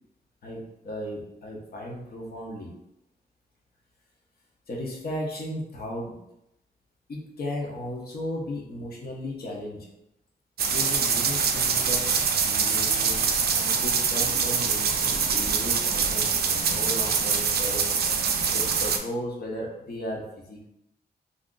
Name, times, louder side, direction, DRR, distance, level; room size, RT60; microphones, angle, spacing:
voice 1, 0.4-2.7 4.7-6.2 7.1-9.9 10.6-12.1 12.4-17.8 18.5-20.7, left 1 dB, 65° left, -2 dB, 0.8 m, -35 dB
sound 1, 10.6-19.0, right 6 dB, 70° right, 0.4 m, -24 dB
2.4 x 2.1 x 3.7 m, 0.83 s
cardioid pair, 85°, 17 cm